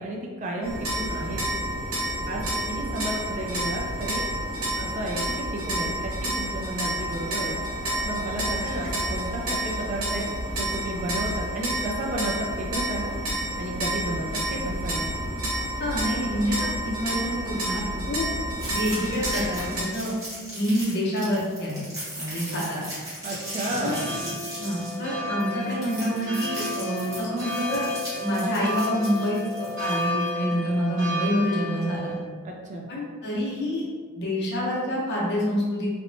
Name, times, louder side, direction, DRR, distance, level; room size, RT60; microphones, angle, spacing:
voice 1, 0.0-1.4 2.3-4.3 4.8-7.6 8.0-13.1 13.6-15.1 23.2-24.1 32.4-32.8, right 1 dB, 35° right, -1 dB, 0.3 m, -32 dB
sound 1, 0.6-19.8, right 1 dB, 80° right, 0.7 m, -30 dB
voice 2, 15.8-17.8 18.1-18.3 18.7-20.1 20.5-21.9 22.1-22.8 23.8-23.9 24.6-27.9 28.2-32.1 32.9-33.9 34.2-35.9, equal, 50° left, -5 dB, 0.7 m, -27 dB
sound 2, 18.5-30.3, right 1 dB, 15° right, 0.8 m, -38 dB
sound 3, 23.2-32.2, left 1 dB, 55° right, 1.0 m, -32 dB
2.8 x 2.1 x 2.6 m, 1.5 s
head